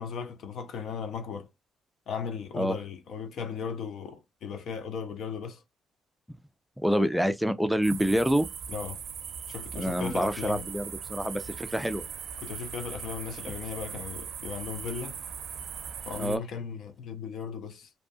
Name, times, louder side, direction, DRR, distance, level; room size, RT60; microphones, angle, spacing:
voice 1, 0.0-1.5 2.1-5.6 8.7-9.0 9.5-10.7 12.4-15.2 16.1-17.9, left 6 dB, 70° left, 0.6 m, -37 dB
voice 2, 6.8-8.5 9.7-12.0 16.2-16.4, equal, 5° right, 0.4 m, -27 dB
sound 1, 7.8-16.4, right 7 dB, 70° right, 0.4 m, -40 dB
2.6 x 2.2 x 2.5 m
cardioid pair, 90°, 0 cm